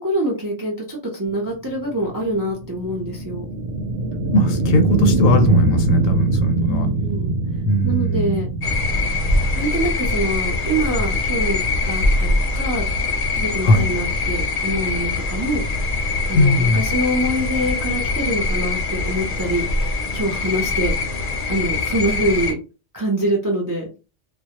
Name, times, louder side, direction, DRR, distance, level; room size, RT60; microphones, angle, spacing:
voice 1, 0.0-3.4 6.6-7.3 7.8-8.5 9.6-12.9 13.3-15.6 16.3-20.9 21.5-22.6 22.9-23.9, right 1 dB, 30° right, 0.3 m, -25 dB
sound 1, 1.5-12.2, right 2 dB, 70° right, 0.8 m, -23 dB
voice 2, 4.3-6.9 7.7-8.4 13.6-13.9 16.3-16.8, left 1 dB, 85° left, 1.0 m, -19 dB
sound 2, 8.6-22.5, left 3 dB, 55° left, 0.6 m, -23 dB
2.2 x 2.0 x 2.8 m
omnidirectional pair, 1.3 m